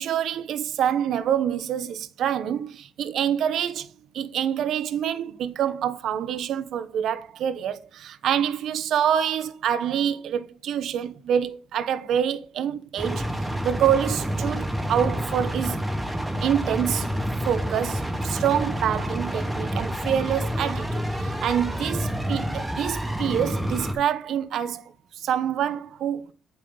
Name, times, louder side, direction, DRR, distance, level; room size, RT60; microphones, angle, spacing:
voice 1, 0.0-3.9 4.1-15.8 16.4-17.1 17.4-24.8 25.1-26.2, right 9 dB, 75° right, 1.0 m, -26 dB
sound 1, 13.0-23.9, equal, 10° right, 2.7 m, -28 dB
8.7 x 7.4 x 4.0 m
cardioid pair, 90°, 0 cm